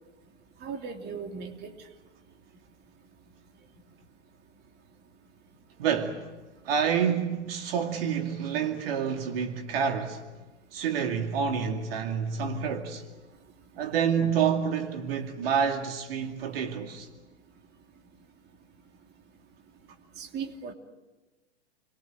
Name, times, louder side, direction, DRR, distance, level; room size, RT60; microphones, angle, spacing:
voice 1, 0.6-1.7 20.2-20.7, right 6 dB, 30° right, 3.1 m, -37 dB
voice 2, 5.8-6.3 6.6-10.3 10.7-13.0 13.8-17.1, right 7 dB, 55° right, 2.5 m, -28 dB
30.0 x 23.0 x 8.0 m
figure-of-eight pair, 105°, 34 cm